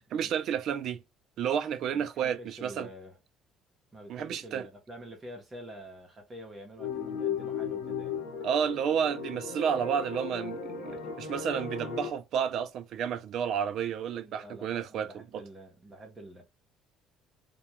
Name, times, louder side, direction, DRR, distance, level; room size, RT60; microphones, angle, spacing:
voice 1, 0.1-1.0 1.4-2.9 4.1-4.7 8.4-15.4, right 8 dB, 50° right, 0.4 m, -31 dB
voice 2, 1.9-3.2 3.9-8.2 14.2-16.4, right 1 dB, 20° right, 0.8 m, -47 dB
sound 1, 6.8-12.1, left 6 dB, 70° left, 0.8 m, -36 dB
2.2 x 2.2 x 2.8 m
cardioid pair, 160°, 0 cm